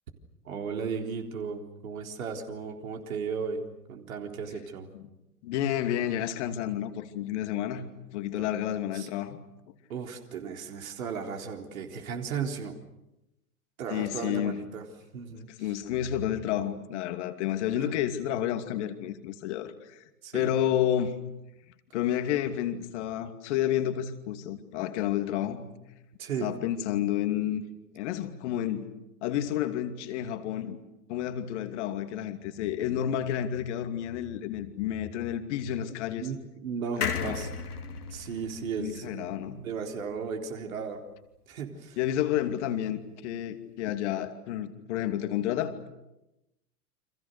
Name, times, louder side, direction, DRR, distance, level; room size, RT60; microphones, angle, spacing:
voice 1, 0.4-4.9 8.4-8.5 8.9-9.1 9.9-12.8 13.8-14.8 15.1-15.7 17.7-17.9 20.2-20.5 26.2-26.5 36.2-37.5 38.1-41.0 41.5-42.0, right 6 dB, 60° right, 4.0 m, -35 dB
voice 2, 5.4-7.8 8.1-9.4 13.9-14.6 15.6-20.0 20.3-21.1 21.9-25.7 26.4-27.6 27.9-28.9 29.2-30.8 31.1-36.3 37.0-37.5 38.8-39.6 42.0-45.9, left 11 dB, 45° left, 2.7 m, -30 dB
sound 1, 37.0-40.5 40.9-41.0 41.2-41.3, left 6 dB, 70° left, 3.1 m, -36 dB
29.5 x 26.0 x 6.7 m
figure-of-eight pair, 100°, 46 cm